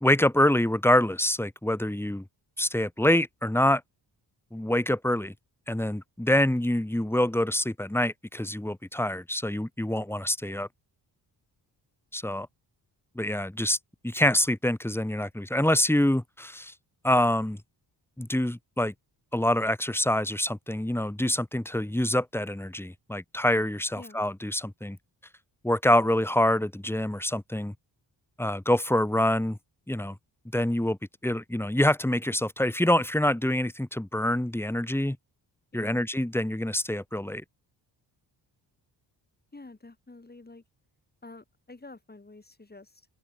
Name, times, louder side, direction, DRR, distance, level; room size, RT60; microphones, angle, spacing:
voice 1, 0.0-2.2 2.6-3.8 4.5-5.3 5.7-10.7 12.1-12.5 13.2-13.8 14.0-16.7 17.0-17.6 18.2-18.9 19.3-25.0 25.6-27.7 28.4-29.6 29.9-30.2 30.5-31.0 31.2-35.2 35.7-37.4, left 1 dB, 5° left, 2.1 m, -26 dB
voice 2, 35.7-36.0 39.5-40.6 41.2-43.1, left 2 dB, 20° left, 6.6 m, -48 dB
open air
cardioid pair, 80°, 43 cm